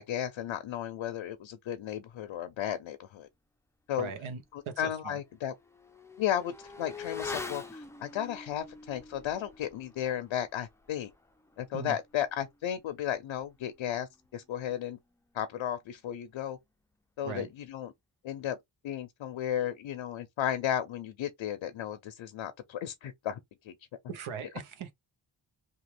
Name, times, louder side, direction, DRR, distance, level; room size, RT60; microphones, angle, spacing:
voice 1, 0.0-3.3 3.9-4.1 4.8-5.5 6.2-11.1 11.6-15.0 15.3-16.6 17.2-17.9 18.2-18.6 18.8-23.4 23.6-23.7, left 10 dB, 75° left, 0.6 m, -34 dB
voice 2, 4.0-5.2 11.7-12.0 17.2-17.5 24.1-24.9, right 6 dB, 85° right, 0.8 m, -39 dB
Motorcycle / Accelerating revving vroom, 4.6-14.6 14.9-15.0, left 4 dB, 5° left, 0.4 m, -46 dB
2.9 x 2.4 x 3.0 m
wide cardioid pair, 95°, 48 cm